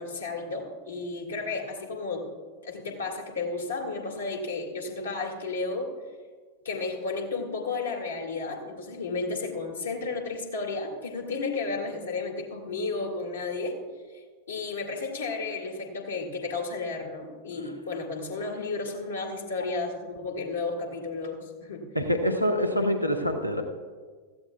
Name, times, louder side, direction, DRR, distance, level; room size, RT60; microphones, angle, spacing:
voice 1, 0.0-2.3 2.6-5.9 6.6-13.8 14.5-21.9, left 3 dB, 70° left, 1 dB, 2.1 m, -33 dB
voice 2, 21.9-23.6, equal, 90° left, 4 dB, 1.0 m, -25 dB
17.0 x 14.0 x 2.3 m, 1.5 s
figure-of-eight pair, 90°, 0 cm